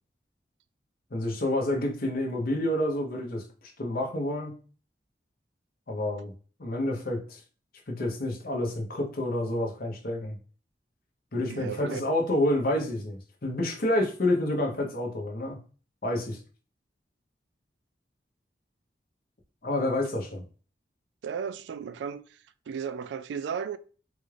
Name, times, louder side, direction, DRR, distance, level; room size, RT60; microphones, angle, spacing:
voice 1, 1.1-4.5 5.9-6.3 6.6-7.4 7.9-10.4 11.3-15.6 16.0-16.4 19.6-20.4, left 1 dB, 55° left, 0.9 m, -29 dB
voice 2, 11.5-12.1 21.2-23.8, right 7 dB, 85° right, 0.3 m, -35 dB
3.9 x 2.4 x 3.2 m
head